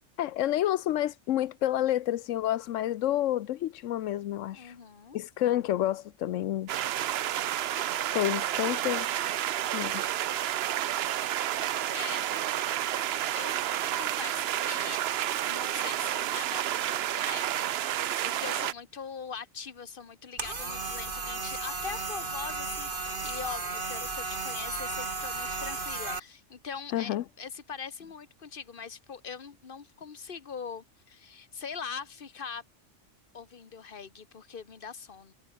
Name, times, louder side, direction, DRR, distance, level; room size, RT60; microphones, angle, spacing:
voice 1, 0.2-4.7 5.1-6.7 8.1-9.1 9.7-10.0 26.9-27.2, left 13 dB, 90° left, 1.0 m, -29 dB
voice 2, 4.5-5.2 11.9-12.3 13.3-13.6 13.9-15.0 15.5-32.6 33.3-35.3, left 6 dB, 45° left, 1.5 m, -42 dB
sound 1, 6.7-18.7, right 12 dB, 65° right, 0.8 m, -30 dB
sound 2, 20.4-26.2, right 3 dB, 45° right, 2.3 m, -34 dB
omnidirectional pair, 1.2 m